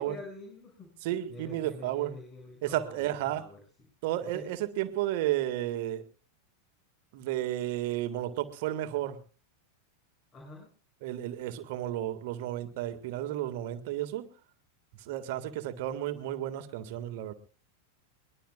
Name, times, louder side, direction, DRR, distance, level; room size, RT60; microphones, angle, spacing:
voice 1, 0.0-0.9 1.3-3.6 4.2-4.6 10.3-10.7, left 2 dB, 25° left, 6.5 m, -46 dB
voice 2, 1.0-2.1 2.6-3.5 4.0-6.0 7.1-9.2 11.0-14.3 15.0-17.3, right 13 dB, 50° right, 1.8 m, -32 dB
22.5 x 21.0 x 2.4 m
figure-of-eight pair, 90°, 0 cm